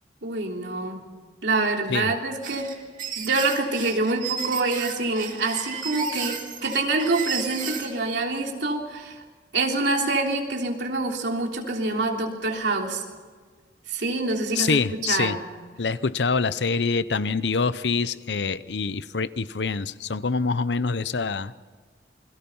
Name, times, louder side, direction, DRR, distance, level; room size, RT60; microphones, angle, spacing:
voice 1, 0.2-1.0 1.4-2.7 3.2-9.2 9.5-13.0 13.9-15.4, right 3 dB, 75° right, 1 dB, 3.3 m, -26 dB
sound 1, 2.4-7.9, right 7 dB, 50° right, 3.0 m, -33 dB
voice 2, 14.6-15.4 15.8-21.5, left 4 dB, 75° left, 16 dB, 0.7 m, -25 dB
28.5 x 22.5 x 5.6 m, 1.5 s
head